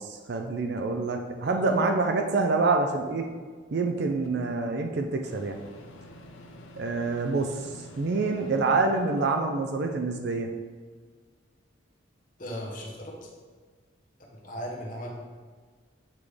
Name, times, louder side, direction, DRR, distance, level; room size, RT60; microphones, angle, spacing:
voice 1, 0.0-3.3 3.7-5.6 6.8-7.6 8.0-10.5, right 3 dB, 55° right, 4 dB, 0.4 m, -26 dB
Microwave oven, 4.2-4.3 5.2-9.5, left 1 dB, 85° left, 0.6 m, -48 dB
voice 2, 12.4-13.1 14.4-15.1, equal, 45° left, -1 dB, 1.0 m, -36 dB
8.2 x 3.6 x 3.3 m, 1.5 s
head